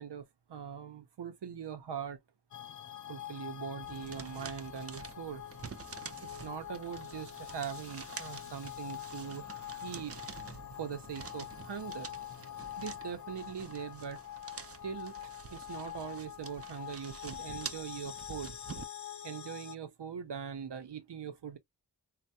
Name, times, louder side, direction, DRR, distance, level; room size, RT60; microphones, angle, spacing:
voice 1, 0.0-2.2 3.1-5.4 6.2-10.2 10.8-12.1 12.8-14.2 14.8-18.5 19.2-21.6, right 7 dB, 90° right, 0.6 m, -42 dB
sound 1, 2.5-19.8, left 11 dB, 50° left, 0.4 m, -45 dB
sound 2, 3.8-18.8, right 5 dB, 35° right, 0.4 m, -48 dB
3.2 x 2.2 x 2.6 m
wide cardioid pair, 55°, 40 cm